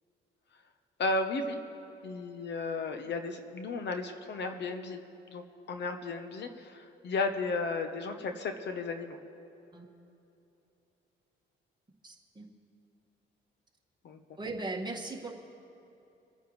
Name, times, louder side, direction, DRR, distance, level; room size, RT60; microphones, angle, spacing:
voice 1, 1.0-1.6 2.0-5.0 5.3-9.2 14.0-14.2, left 3 dB, 60° left, 7 dB, 1.0 m, -34 dB
voice 2, 12.0-12.5 14.4-15.3, right 2 dB, 20° right, -1 dB, 1.9 m, -38 dB
28.0 x 9.6 x 3.2 m, 2.8 s
cardioid pair, 90°, 20 cm